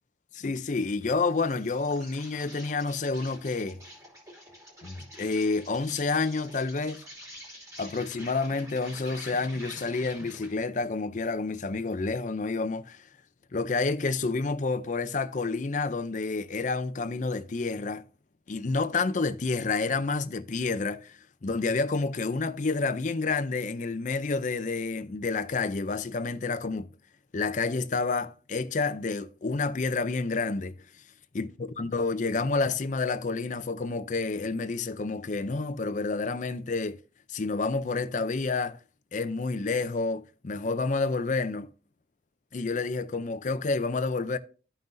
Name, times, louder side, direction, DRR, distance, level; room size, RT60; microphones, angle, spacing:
voice 1, 0.3-3.8 4.8-7.0 7.8-13.0 13.5-18.0 18.5-26.9 27.3-30.8 31.3-31.5 31.8-37.0 37.3-38.8 39.1-41.7 42.5-44.4, left 3 dB, 45° left, 0.5 m, -29 dB
Insect, 1.2-10.6, equal, 20° right, 2.8 m, -47 dB
13.0 x 5.8 x 2.6 m
head